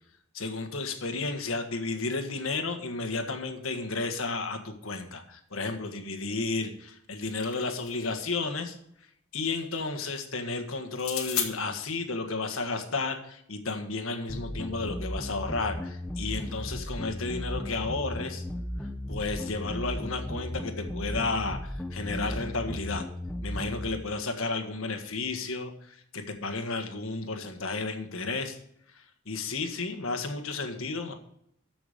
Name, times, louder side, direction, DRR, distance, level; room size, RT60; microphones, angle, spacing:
voice 1, 0.3-9.1 9.3-18.5 18.8-23.1 23.4-28.6 28.9-31.1, left 3 dB, 70° left, 6 dB, 1.6 m, -33 dB
sound 1, 6.9-8.2 10.9-11.5, left 9 dB, 85° left, 1.8 m, -34 dB
sound 2, 14.3-23.9, left 1 dB, 5° left, 0.6 m, -35 dB
14.0 x 6.1 x 5.1 m, 0.74 s
head